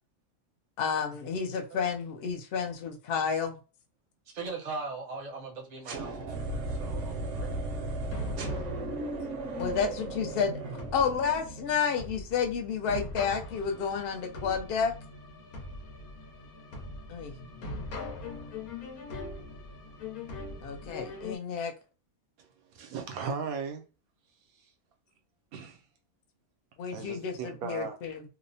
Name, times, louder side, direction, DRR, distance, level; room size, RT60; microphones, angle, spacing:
voice 1, 0.8-3.6 9.6-10.6 10.9-14.9 17.1-17.3 20.6-21.7 26.8-28.2, left 6 dB, 65° left, 0.6 m, -30 dB
voice 2, 4.3-7.5, right 4 dB, 45° right, 0.6 m, -40 dB
sound 1, 5.8-11.8, right 2 dB, 65° right, 0.9 m, -36 dB
sound 2, 8.1-21.4, left 2 dB, 85° left, 1.2 m, -41 dB
voice 3, 22.4-23.8 25.5-25.8 26.9-28.0, right 6 dB, 90° right, 1.1 m, -37 dB
2.8 x 2.0 x 2.6 m
omnidirectional pair, 1.5 m